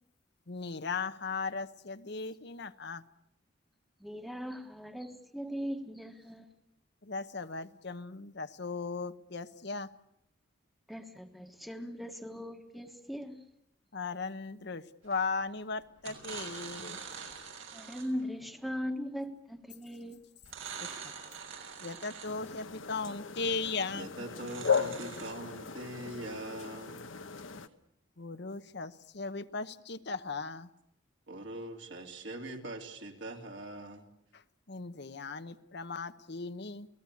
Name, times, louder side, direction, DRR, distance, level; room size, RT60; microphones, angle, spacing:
voice 1, 0.5-3.0 7.0-9.9 13.9-17.0 20.8-21.1 21.8-24.1 28.2-30.7 34.3-36.9, left 4 dB, 55° left, 1.0 m, -37 dB
voice 2, 4.0-6.5 10.9-13.4 17.7-20.2, equal, ahead, 1.5 m, -39 dB
sound 1, 15.1-15.4 16.0-18.2 20.4-22.5 24.3-25.3, right 6 dB, 85° right, 6.4 m, -44 dB
sound 2, 22.2-27.7, left 6 dB, 80° left, 1.2 m, -36 dB
voice 3, 23.9-27.1 31.3-34.1, right 1 dB, 60° right, 3.4 m, -42 dB
29.0 x 18.5 x 8.5 m
head